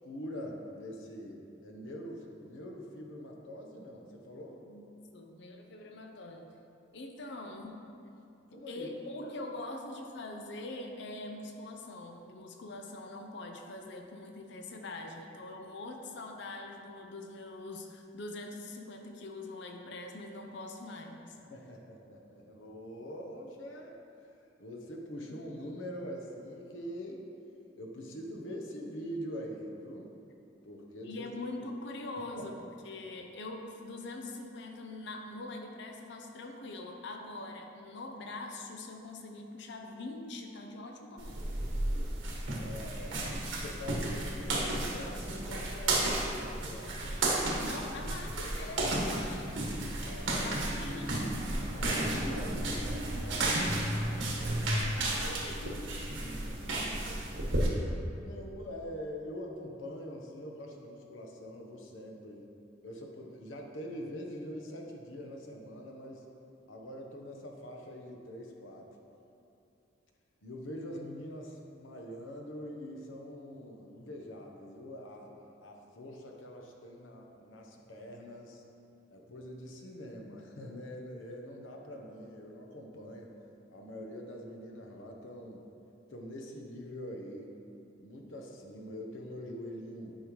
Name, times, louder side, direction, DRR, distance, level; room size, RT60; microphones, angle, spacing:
voice 1, 0.0-4.6 8.5-8.9 21.4-23.9 24.2-24.3 24.6-27.3 27.8-30.2 30.6-31.2 32.4-32.5 42.6-47.1 50.0-50.6 51.7-54.6 56.2-57.2 58.2-62.5 62.8-66.3 66.7-69.0 70.4-75.3 75.6-78.6 79.1-83.3 83.7-85.6 86.1-87.5 88.0-90.2, equal, 85° left, 0 dB, 1.0 m, -44 dB
voice 2, 5.1-6.6 6.9-7.8 8.5-21.4 31.0-41.4 47.6-49.6 50.4-51.4 54.4-56.0, left 2 dB, 65° left, 3 dB, 0.6 m, -43 dB
sound 1, 41.2-57.7, right 1 dB, 85° right, 1.5 m, -33 dB
10.5 x 5.5 x 3.1 m, 2.7 s
head